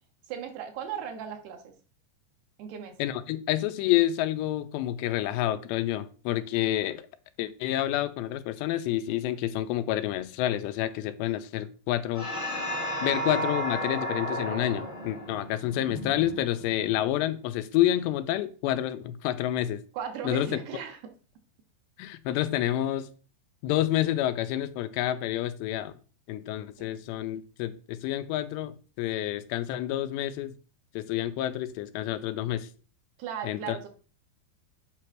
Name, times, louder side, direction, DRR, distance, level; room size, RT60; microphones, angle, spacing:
voice 1, 0.3-1.7 2.6-3.0 19.9-21.0 26.8-26.9 33.2-33.9, right 8 dB, 75° right, 5 dB, 2.8 m, -37 dB
voice 2, 3.0-7.0 7.4-12.3 13.0-19.8 20.2-20.5 22.0-23.1 23.6-25.9 26.3-30.5 31.0-32.7 33.4-33.8, left 13 dB, 90° left, 10 dB, 2.8 m, -28 dB
sound 1, 12.1-16.9, equal, 25° left, 0.6 m, -33 dB
8.4 x 3.1 x 5.8 m, 0.38 s
omnidirectional pair, 4.9 m